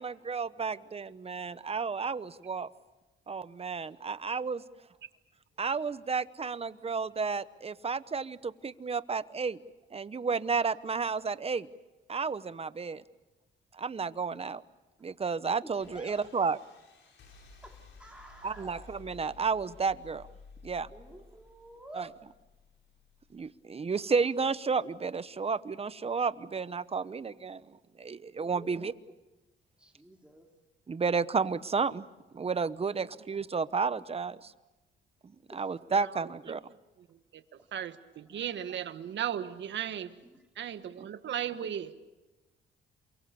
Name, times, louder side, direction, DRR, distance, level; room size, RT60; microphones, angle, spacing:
voice 1, 0.0-2.7 3.3-4.6 5.6-9.6 9.9-11.7 12.1-13.0 13.8-14.6 15.0-16.6 18.4-20.3 20.6-20.9 21.9-22.1 23.3-28.9 30.9-32.1 32.3-34.5 35.5-36.6 41.0-41.1, right 5 dB, 30° right, 15 dB, 1.0 m, -32 dB
voice 2, 15.6-16.3 17.6-18.8 20.9-22.1 28.4-28.9 29.8-30.5 32.8-33.2 35.5-35.7 38.3-38.5 40.2-40.5, right 1 dB, 5° right, 1 dB, 3.0 m, -51 dB
sound 1, 15.8-23.5, left 3 dB, 70° left, 6.0 m, -55 dB
voice 3, 37.1-37.4 37.7-40.1 40.6-41.9, right 10 dB, 65° right, 10 dB, 1.6 m, -36 dB
28.0 x 23.5 x 7.0 m, 1.1 s
cardioid pair, 90°, 20 cm